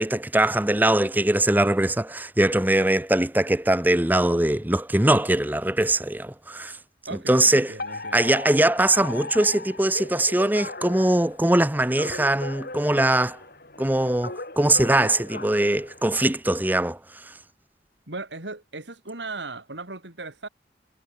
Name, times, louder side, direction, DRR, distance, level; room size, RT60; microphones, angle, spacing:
voice 1, 0.0-6.8 7.3-7.7 8.1-13.4 13.8-17.0, right 1 dB, 10° right, 0.7 m, -21 dB
voice 2, 7.1-8.3 18.1-20.5, right 3 dB, 80° right, 3.8 m, -37 dB
Alarm, 7.8-16.4, left 2 dB, 55° left, 6.4 m, -38 dB
head